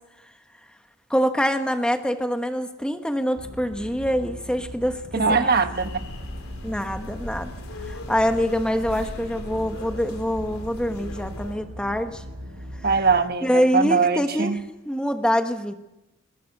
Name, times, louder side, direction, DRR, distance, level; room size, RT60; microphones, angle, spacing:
voice 1, 1.1-5.5 6.6-7.5 7.8-12.2 13.4-14.6 14.9-15.7, equal, 5° left, 6 dB, 1.3 m, -25 dB
sound 1, 3.4-13.2, equal, 75° right, 5.9 m, -40 dB
voice 2, 5.1-6.0 12.8-14.6, right 4 dB, 50° right, 8 dB, 1.3 m, -21 dB
sound 2, 5.7-11.6, left 1 dB, 90° left, 3.6 m, -38 dB
22.0 x 20.0 x 6.7 m, 0.93 s
head